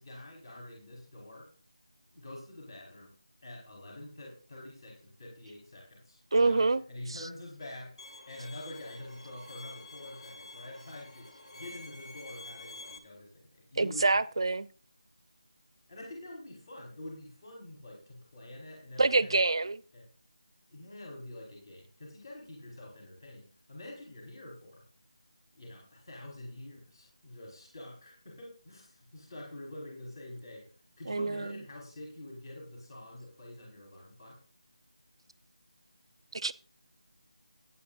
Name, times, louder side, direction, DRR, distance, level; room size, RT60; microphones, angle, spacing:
voice 1, 0.0-1.5 2.1-3.1 3.4-14.1 15.9-19.4 19.9-20.1 20.7-24.8 25.5-30.7 31.0-34.4, left 1 dB, 45° left, 5.0 m, -47 dB
voice 2, 6.3-6.8 7.1-7.2 13.8-14.7 19.0-19.8 31.1-31.6 36.3-36.5, right 3 dB, 50° right, 0.7 m, -26 dB
Bowed string instrument, 8.0-13.0, left 2 dB, 85° left, 2.5 m, -49 dB
22.0 x 9.1 x 2.7 m
figure-of-eight pair, 170°, 3 cm